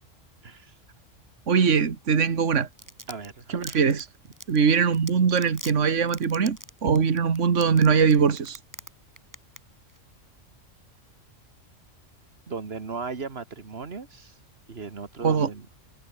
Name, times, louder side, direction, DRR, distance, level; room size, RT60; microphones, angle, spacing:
voice 1, 0.4-0.7 3.1-3.7 6.8-6.9 12.5-14.4 14.7-15.7, right 4 dB, 50° right, 2.1 m, -37 dB
voice 2, 1.5-2.7 3.5-4.1 4.5-8.6 15.2-15.5, right 6 dB, 70° right, 1.9 m, -22 dB
Domestic sounds home sounds, 2.5-8.9 9.2-9.6 9.9-10.0, right 1 dB, 15° right, 5.4 m, -41 dB
omnidirectional pair, 1.3 m